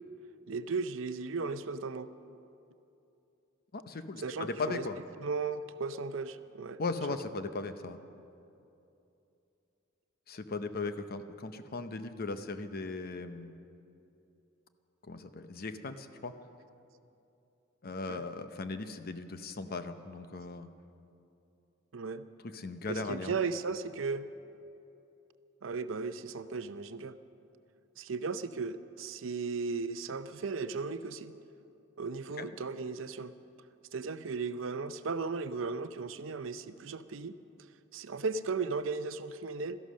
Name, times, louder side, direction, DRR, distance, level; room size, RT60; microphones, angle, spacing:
voice 1, 0.5-2.1 4.2-4.8 5.2-6.8 18.1-18.2 21.9-22.2 22.9-24.3 25.6-27.1 28.0-31.3 32.0-33.3 33.9-37.3 37.9-39.8, right 4 dB, 75° right, 12 dB, 0.6 m, -36 dB
voice 2, 3.7-5.0 6.8-8.0 10.3-13.5 15.0-16.3 17.8-20.7 22.4-23.3 32.4-32.5, left 3 dB, 50° left, 9 dB, 0.8 m, -38 dB
17.0 x 13.5 x 6.3 m, 2.8 s
head